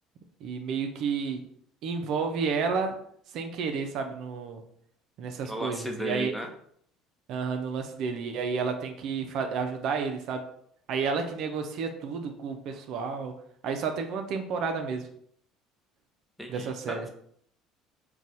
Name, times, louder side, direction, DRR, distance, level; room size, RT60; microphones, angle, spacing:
voice 1, 0.4-1.4 1.8-3.0 3.3-4.6 5.2-6.3 7.3-10.4 10.9-13.3 13.6-15.1 16.5-17.0, right 5 dB, 65° right, 5 dB, 0.4 m, -31 dB
voice 2, 5.4-6.5 16.4-17.1, equal, 5° left, 3 dB, 0.6 m, -35 dB
4.0 x 2.3 x 2.6 m, 0.65 s
supercardioid pair, 80°, 0 cm